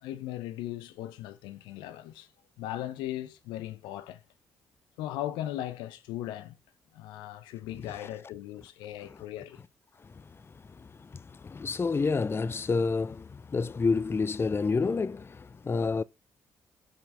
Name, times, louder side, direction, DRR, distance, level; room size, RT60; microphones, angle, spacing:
voice 1, 0.0-2.3 2.6-4.2 5.0-6.6 6.9-9.6, left 13 dB, 75° left, 0.7 m, -38 dB
voice 2, 10.8-16.0, left 4 dB, 30° left, 0.5 m, -29 dB
15.0 x 5.7 x 3.4 m
hypercardioid pair, 40°, 8 cm